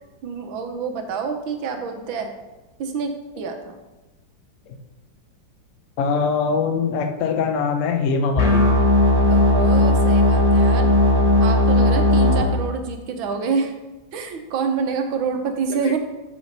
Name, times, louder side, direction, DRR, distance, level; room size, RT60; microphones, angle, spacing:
voice 1, 0.2-2.3 2.8-3.8 9.3-10.9 11.4-13.7 14.1-16.0, right 5 dB, 85° right, 5 dB, 1.7 m, -27 dB
voice 2, 6.0-8.8 15.8-16.0, left 5 dB, 60° left, 4 dB, 0.9 m, -22 dB
sound 1, 8.4-12.4, left 1 dB, 20° left, 1.8 m, -16 dB
7.3 x 6.2 x 4.0 m, 1.1 s
omnidirectional pair, 2.1 m